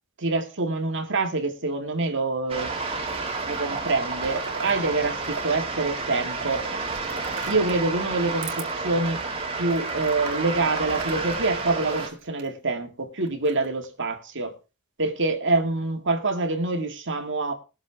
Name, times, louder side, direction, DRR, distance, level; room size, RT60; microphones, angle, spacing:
voice 1, 0.2-2.7 3.4-6.7 7.5-9.2 9.6-14.5 15.0-17.5, right 3 dB, 55° right, 2.3 m, -26 dB
sound 1, 2.5-12.1, right 3 dB, 25° right, 2.5 m, -30 dB
sound 2, 2.8-3.5 3.8-5.5 5.7-7.9 8.4-8.6 9.1-9.2 9.7-12.5 13.2-13.8, right 4 dB, 80° right, 2.6 m, -39 dB
21.5 x 7.2 x 3.6 m
head